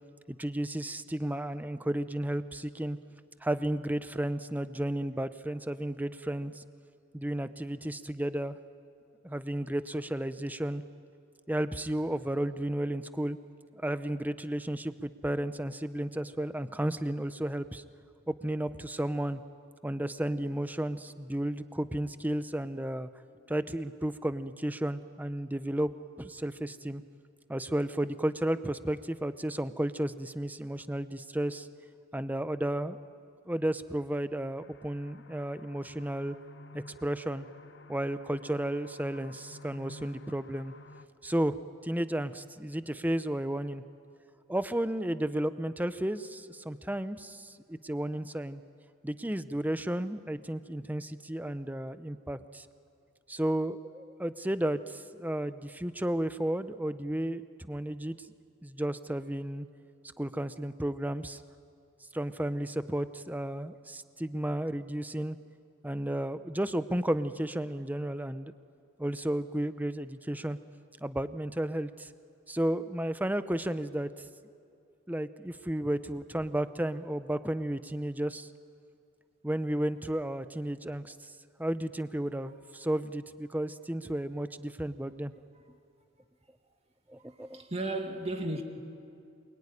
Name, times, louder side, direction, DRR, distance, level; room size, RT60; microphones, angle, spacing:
voice 1, 0.3-3.0 3.4-6.6 7.1-8.6 9.2-10.8 11.5-13.4 13.7-17.8 18.3-19.4 19.8-23.1 23.5-25.9 26.2-27.0 27.5-31.7 32.1-33.0 33.5-36.4 36.7-37.5 37.9-40.7 41.2-41.6 41.8-43.8 44.5-48.6 49.0-52.7 53.3-57.4 57.7-58.2 58.6-59.7 60.2-61.4 62.1-65.4 65.8-68.5 69.0-70.6 71.0-72.1 72.5-74.1 75.1-78.5 79.4-81.3 81.6-85.3 87.1-87.6, right 1 dB, 10° right, 0.7 m, -33 dB
sound 1, 34.6-41.1, left 2 dB, 60° left, 0.9 m, -52 dB
voice 2, 87.2-88.6, right 2 dB, 30° right, 2.3 m, -35 dB
27.0 x 22.5 x 9.9 m
head